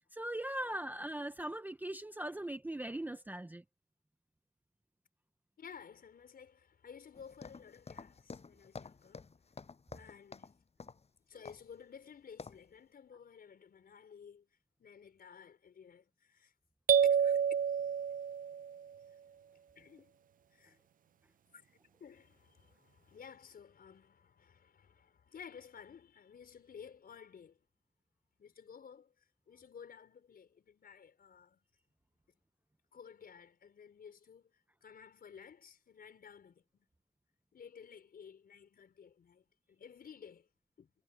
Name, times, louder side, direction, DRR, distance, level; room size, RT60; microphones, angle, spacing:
voice 1, 0.1-3.6, right 1 dB, 10° right, 0.7 m, -40 dB
voice 2, 5.6-9.5 9.9-10.5 11.3-14.5 14.8-16.5 17.0-17.4 19.8-20.2 20.5-20.8 21.5-27.6 28.4-31.6 32.9-36.9 37.5-40.5 40.8-40.9, left 7 dB, 50° left, 5.2 m, -54 dB
sound 1, 7.1-10.5 10.8-11.1 11.5-11.7 12.4-12.7, left 4 dB, 30° left, 6.6 m, -50 dB
sound 2, 16.9-18.8, right 7 dB, 45° right, 0.5 m, -29 dB
cardioid pair, 90°, 20 cm